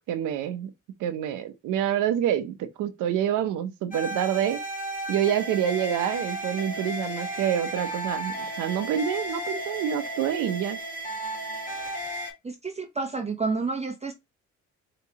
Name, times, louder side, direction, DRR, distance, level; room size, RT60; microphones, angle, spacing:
voice 1, 0.1-0.7 1.0-4.6 5.1-10.8, right 10 dB, 90° right, 0.7 m, -27 dB
sound 1, 3.9-12.3, right 1 dB, 25° left, 1.9 m, -34 dB
voice 2, 12.4-14.1, right 4 dB, 20° right, 0.7 m, -29 dB
4.6 x 3.0 x 2.8 m
cardioid pair, 90°, 30 cm